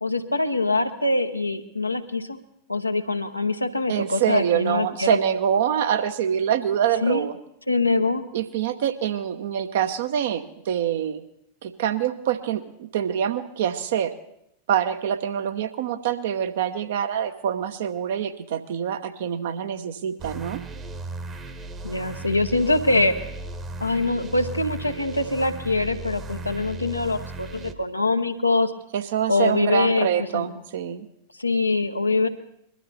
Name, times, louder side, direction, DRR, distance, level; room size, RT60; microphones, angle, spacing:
voice 1, 0.0-2.4 2.7-5.2 7.0-7.3 7.7-8.2 21.8-23.2 23.8-28.7 29.3-30.1 30.3-30.5 31.4-32.3, left 2 dB, 85° left, 7 dB, 0.9 m, -23 dB
voice 2, 3.9-7.3 8.3-11.2 11.6-14.1 14.7-20.6 28.9-31.1, right 9 dB, 55° right, 9 dB, 1.0 m, -25 dB
sound 1, 20.2-27.7, right 3 dB, 25° right, 1.1 m, -36 dB
21.5 x 12.5 x 4.2 m, 0.78 s
figure-of-eight pair, 90°, 0 cm